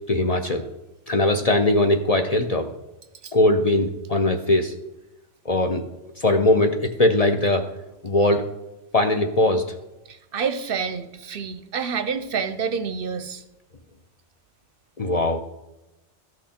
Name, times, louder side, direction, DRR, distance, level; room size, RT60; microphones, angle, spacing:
voice 1, 0.1-0.6 1.1-2.7 3.3-4.7 5.5-5.8 6.2-7.7 8.0-8.5 8.9-9.6 15.0-15.4, left 2 dB, 45° left, 5 dB, 0.6 m, -20 dB
voice 2, 10.1-13.4, right 6 dB, 60° right, 10 dB, 0.7 m, -28 dB
13.0 x 5.9 x 4.3 m, 0.95 s
omnidirectional pair, 1.2 m